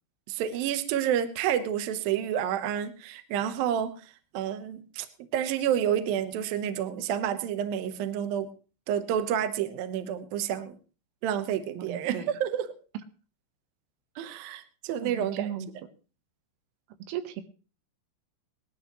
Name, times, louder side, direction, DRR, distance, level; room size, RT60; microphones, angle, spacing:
voice 1, 0.3-4.0 4.3-5.1 5.3-8.5 8.9-10.8 11.2-12.7 14.2-15.5, right 9 dB, 70° right, 10 dB, 2.3 m, -29 dB
voice 2, 11.7-12.3 15.0-15.7 17.1-17.4, right 10 dB, 85° right, 10 dB, 3.7 m, -36 dB
20.0 x 13.0 x 3.1 m, 0.36 s
omnidirectional pair, 5.6 m